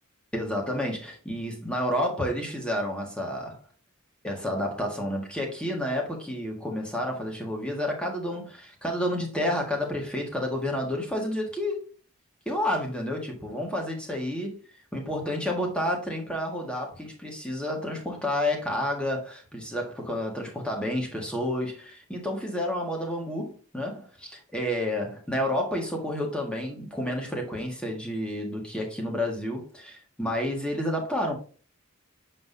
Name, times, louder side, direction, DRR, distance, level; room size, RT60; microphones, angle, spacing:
voice 1, 0.3-3.6 4.2-11.8 12.4-14.6 14.9-31.3, left 1 dB, 5° left, 1.7 m, -30 dB
7.6 x 5.6 x 2.8 m
head